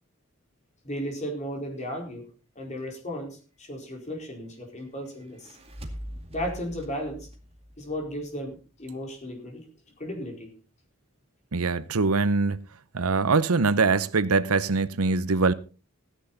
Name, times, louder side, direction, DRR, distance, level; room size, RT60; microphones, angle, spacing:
voice 1, 0.8-2.3 2.5-5.6 6.3-7.3 7.8-9.6 10.0-10.5, equal, 30° left, 4.5 m, -35 dB
sound 1, 5.2-8.6, equal, 25° right, 2.2 m, -42 dB
voice 2, 11.5-12.6 12.9-15.5, right 4 dB, 85° right, 0.8 m, -23 dB
15.5 x 10.0 x 4.1 m
head